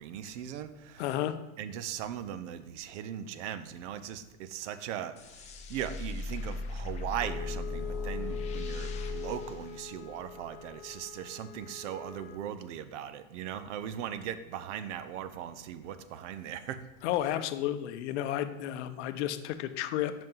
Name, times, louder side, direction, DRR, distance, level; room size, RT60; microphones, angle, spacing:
voice 1, 0.0-1.0 1.6-16.8, right 9 dB, 60° right, 12 dB, 0.7 m, -39 dB
voice 2, 1.0-1.4 17.0-20.1, left 12 dB, 55° left, 10 dB, 0.7 m, -32 dB
sound 1, 5.2-10.5, left 2 dB, 20° left, 0.4 m, -38 dB
Wind instrument woodwind instrument, 7.2-12.5, left 8 dB, 85° left, 0.8 m, -43 dB
5.4 x 5.4 x 5.4 m, 1.0 s
hypercardioid pair, 125°, 41 cm